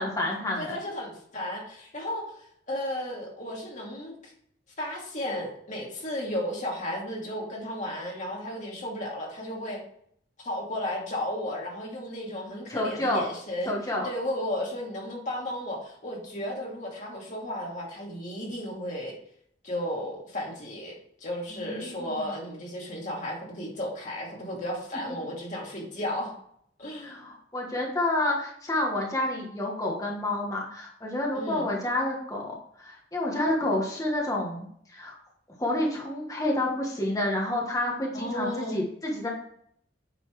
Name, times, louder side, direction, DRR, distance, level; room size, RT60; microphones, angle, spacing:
voice 1, 0.0-0.8 12.7-13.3 13.7-14.1 21.5-22.3 27.0-34.7 34.9-35.1 35.6-39.3, left 1 dB, 20° left, -1 dB, 1.4 m, -29 dB
voice 2, 0.6-2.3 2.7-4.1 4.8-9.8 10.4-13.7 14.0-19.2 19.6-26.3 26.8-27.2 31.3-31.7 38.1-38.8, left 1 dB, 45° left, -3 dB, 2.6 m, -34 dB
9.2 x 4.2 x 4.7 m, 0.66 s
head